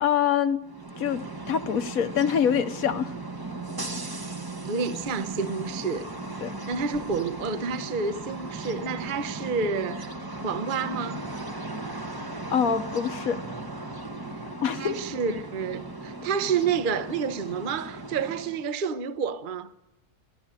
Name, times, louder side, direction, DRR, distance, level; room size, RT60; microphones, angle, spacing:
voice 1, 0.0-0.6 1.0-1.2 1.5-3.1 6.4-6.5 12.5-13.4 14.5-15.0, left 8 dB, 65° left, 1.4 m, -25 dB
sound 1, 0.6-18.7, right 2 dB, 15° right, 1.1 m, -37 dB
voice 2, 4.7-6.1 6.7-10.1 10.4-11.2 14.7-19.7, right 5 dB, 40° right, 0.9 m, -29 dB
29.5 x 11.5 x 8.9 m
omnidirectional pair, 1.6 m